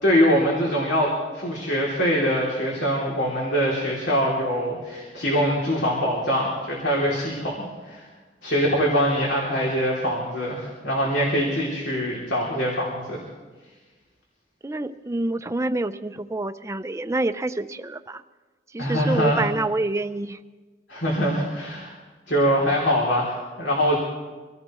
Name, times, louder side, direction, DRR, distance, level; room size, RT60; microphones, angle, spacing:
voice 1, 0.0-8.0 8.4-13.2 18.8-19.4 20.9-21.9 22.3-24.0, equal, 90° left, -3 dB, 2.8 m, -23 dB
voice 2, 14.6-18.2 18.7-20.4, right 2 dB, 15° right, 11 dB, 0.4 m, -27 dB
25.5 x 16.5 x 3.1 m, 1.3 s
head